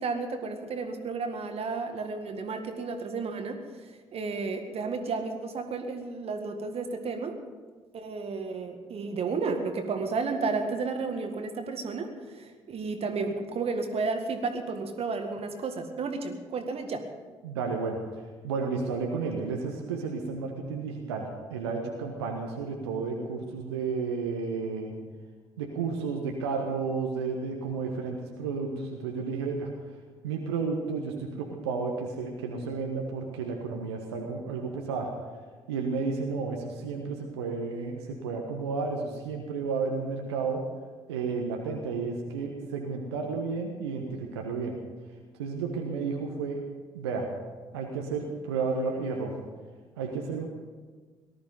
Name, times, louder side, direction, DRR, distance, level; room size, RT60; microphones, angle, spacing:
voice 1, 0.0-7.4 7.9-17.1, right 4 dB, 45° right, 6 dB, 1.9 m, -32 dB
voice 2, 17.4-18.0 18.4-24.9 25.6-29.7 30.2-35.1 35.7-40.6 41.1-44.8 45.4-46.6 46.9-47.3 47.7-49.3 50.0-50.5, right 4 dB, 75° right, 1 dB, 1.4 m, -32 dB
18.5 x 13.0 x 5.4 m, 1.4 s
figure-of-eight pair, 45°, 14 cm